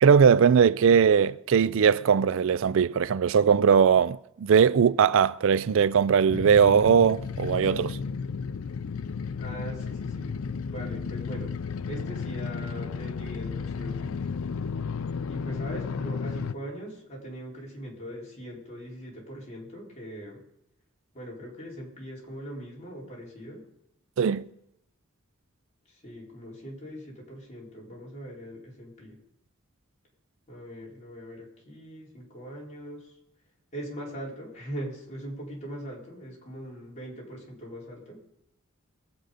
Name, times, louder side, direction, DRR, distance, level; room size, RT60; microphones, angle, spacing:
voice 1, 0.0-8.0 24.2-24.4, right 7 dB, 70° right, 0.4 m, -20 dB
sound 1, 6.3-16.6, left 5 dB, 85° left, 0.5 m, -33 dB
voice 2, 9.4-10.3 10.6-11.5 11.9-14.2 15.3-20.4 21.1-23.7 25.9-29.2 30.5-33.1 33.7-38.2, equal, 35° left, 4.3 m, -41 dB
23.0 x 7.9 x 5.1 m
head